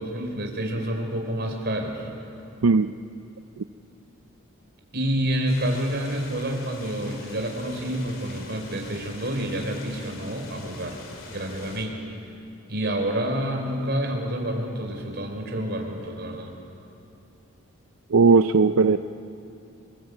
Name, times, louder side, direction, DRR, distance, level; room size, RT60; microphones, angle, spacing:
voice 1, 0.0-2.0 4.9-11.0 11.3-12.0 12.7-16.5, right 1 dB, 50° right, 2 dB, 4.3 m, -28 dB
sound 1, 5.5-11.9, left 3 dB, 65° left, 3.1 m, -44 dB
voice 2, 18.1-19.0, right 4 dB, 85° right, 9 dB, 0.5 m, -17 dB
27.5 x 20.5 x 8.3 m, 2.7 s
head